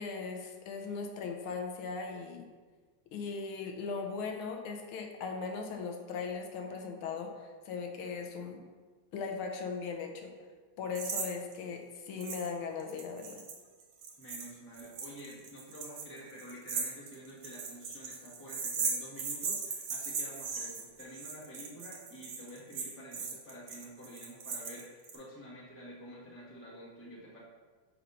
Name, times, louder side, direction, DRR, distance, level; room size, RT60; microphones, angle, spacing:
voice 1, 0.0-2.5 3.1-8.6 9.1-10.3 10.8-13.4, left 5 dB, 85° left, 3 dB, 1.5 m, -38 dB
sound 1, 11.0-11.3 11.5-11.6 12.2-12.5 12.8-25.2, right 5 dB, 75° right, 1.7 m, -38 dB
voice 2, 14.2-27.4, equal, 10° left, -6 dB, 0.7 m, -49 dB
6.1 x 3.0 x 5.2 m, 1.4 s
omnidirectional pair, 2.3 m